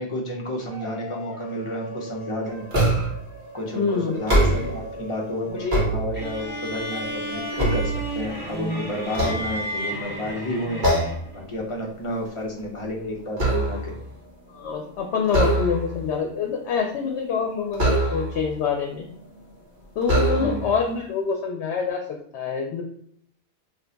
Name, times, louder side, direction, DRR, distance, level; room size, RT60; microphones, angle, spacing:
voice 1, 0.0-2.6 3.5-10.8 11.3-13.9 20.4-20.7, left 1 dB, 35° left, -1 dB, 0.7 m, -31 dB
sound 1, 0.7-5.8 6.4-7.0 7.3-7.5, right 1 dB, 25° right, 1.1 m, -40 dB
sound 2, 2.7-3.3 4.1-4.9 5.4-6.5 7.0-8.5 9.1-10.1 10.8-11.3 11.7-12.0 12.3-14.0 15.2-16.1 17.7-18.5 19.3-19.4 20.0-20.8, right 1 dB, 50° right, 1.2 m, -24 dB
voice 2, 3.8-4.2 5.5-5.8 14.5-19.1 20.0-22.0 22.3-22.8, left 5 dB, 90° left, 2 dB, 0.9 m, -26 dB
sound 3, 6.1-11.4, equal, 10° right, 0.8 m, -32 dB
2.8 x 2.2 x 3.8 m, 0.64 s
omnidirectional pair, 1.1 m